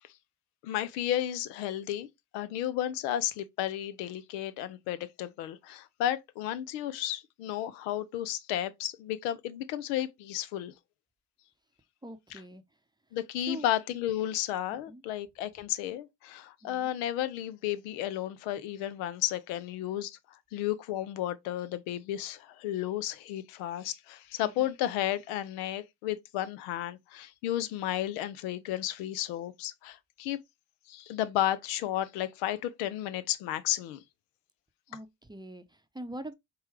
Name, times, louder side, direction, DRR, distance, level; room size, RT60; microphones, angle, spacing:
voice 1, 0.6-2.1 2.3-10.7 13.1-20.2 20.5-30.4 30.9-34.0, left 12 dB, 90° left, 0.5 m, -33 dB
voice 2, 12.0-12.6 13.4-13.7 14.7-15.0 16.6-17.0 24.4-24.7 34.9-36.3, right 2 dB, 10° right, 0.6 m, -44 dB
4.6 x 2.2 x 3.1 m
supercardioid pair, 55°, 48 cm